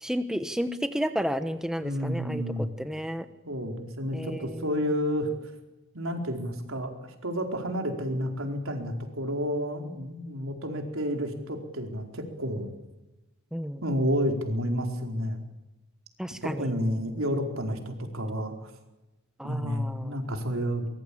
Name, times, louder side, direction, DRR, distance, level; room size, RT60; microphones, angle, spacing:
voice 1, 0.0-2.4 2.8-3.3 4.1-4.5 13.5-13.8 16.2-16.7 19.4-20.1, equal, 5° right, 9 dB, 1.1 m, -31 dB
voice 2, 1.8-2.7 3.4-5.3 5.9-12.7 13.8-15.4 16.4-18.7 19.4-20.9, equal, 70° right, 4 dB, 4.6 m, -30 dB
23.5 x 21.5 x 8.7 m, 1.0 s
head